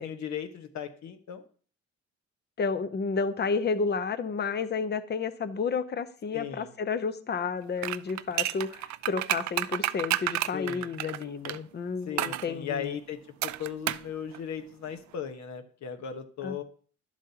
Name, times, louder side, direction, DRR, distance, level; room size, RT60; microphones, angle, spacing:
voice 1, 0.0-1.4 6.3-6.7 10.5-10.9 12.1-16.6, left 8 dB, 65° left, 7 dB, 1.2 m, -37 dB
voice 2, 2.6-13.0 16.4-16.6, left 5 dB, 35° left, 13 dB, 0.7 m, -31 dB
sound 1, 7.8-11.6 12.2-12.5 13.4-14.1 14.3-14.4, right 14 dB, 65° right, 0.4 m, -30 dB
11.0 x 7.4 x 2.9 m, 0.43 s
cardioid pair, 90°, 30 cm